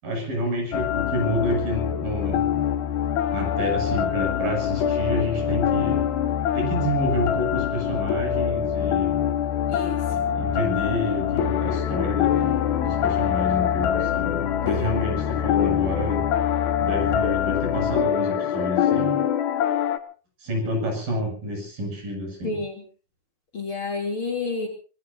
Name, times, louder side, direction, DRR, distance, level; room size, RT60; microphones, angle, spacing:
voice 1, 0.0-2.5 3.3-6.0 6.5-9.2 10.1-16.3 16.8-19.2 20.4-22.6, equal, 65° right, 2 dB, 8.7 m, -29 dB
sound 1, 0.7-20.0, left 9 dB, 85° left, 3.2 m, -24 dB
voice 2, 22.4-22.8 23.5-24.7, left 3 dB, 35° left, 1 dB, 3.5 m, -29 dB
25.0 x 20.5 x 2.8 m, 0.37 s
omnidirectional pair, 4.3 m